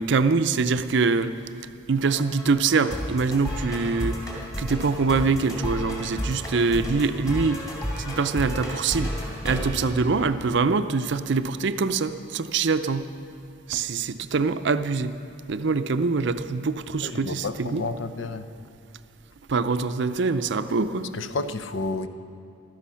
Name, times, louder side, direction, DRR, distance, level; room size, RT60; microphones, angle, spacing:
voice 1, 0.0-1.4 1.9-4.3 4.6-7.6 8.0-9.2 9.4-13.1 13.7-15.2 15.5-17.9 19.5-21.1, right 4 dB, 60° right, 11 dB, 0.5 m, -24 dB
sound 1, 2.1-10.7, equal, 15° left, 2.6 m, -33 dB
voice 2, 17.0-18.5 21.1-22.1, left 3 dB, 65° left, 11 dB, 0.7 m, -31 dB
16.0 x 12.5 x 5.7 m, 2.6 s
head